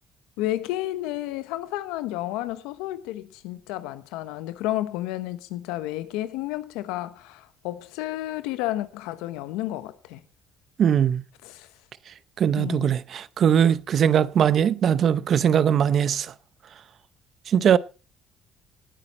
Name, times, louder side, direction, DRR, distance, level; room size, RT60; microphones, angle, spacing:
voice 1, 0.4-10.2 11.4-11.7 12.6-12.9, left 15 dB, 85° left, 1.0 m, -31 dB
voice 2, 10.8-11.2 12.4-16.3 17.5-17.8, right 8 dB, 55° right, 0.7 m, -20 dB
18.5 x 8.6 x 4.3 m
supercardioid pair, 80°, 0 cm